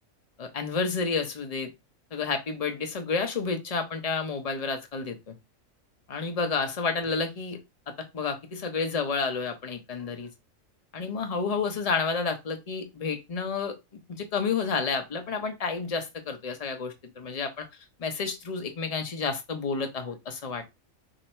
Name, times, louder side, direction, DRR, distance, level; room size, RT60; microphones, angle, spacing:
voice 1, 0.4-1.7 2.1-5.3 6.1-7.6 8.1-10.3 10.9-13.7 14.1-17.7 18.0-20.8, left 4 dB, 35° left, 6 dB, 0.7 m, -30 dB
3.8 x 2.7 x 4.3 m, 0.22 s
omnidirectional pair, 1.4 m